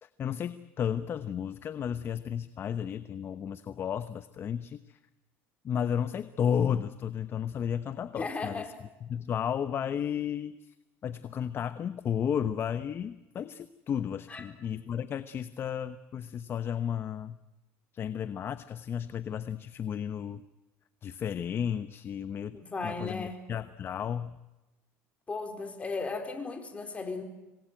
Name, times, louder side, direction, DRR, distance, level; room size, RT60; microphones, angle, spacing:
voice 1, 0.0-5.0 5.6-8.7 9.1-10.7 11.0-17.4 17.9-20.4 21.0-24.3, left 8 dB, 35° left, 12 dB, 1.0 m, -33 dB
voice 2, 8.2-8.7 14.3-14.5 22.5-23.5 25.3-27.2, left 3 dB, 20° left, 6 dB, 4.4 m, -36 dB
26.5 x 20.0 x 9.1 m, 1.0 s
supercardioid pair, 115°, 6 cm